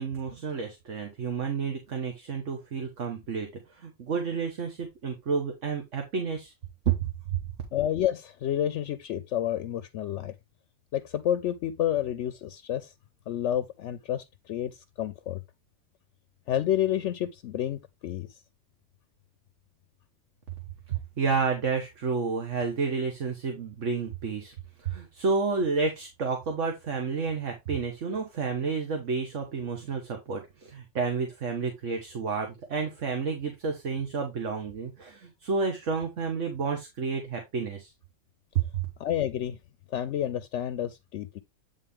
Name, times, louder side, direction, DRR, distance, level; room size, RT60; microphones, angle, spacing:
voice 1, 0.0-3.5 3.8-6.5 6.9-7.0 21.2-37.9 38.5-38.8, right 5 dB, 70° right, 1.6 m, -30 dB
voice 2, 7.7-10.3 10.9-12.9 13.3-15.4 16.5-18.4 39.0-39.6 39.9-41.4, left 11 dB, 70° left, 0.9 m, -29 dB
9.1 x 3.7 x 3.6 m
omnidirectional pair, 1.3 m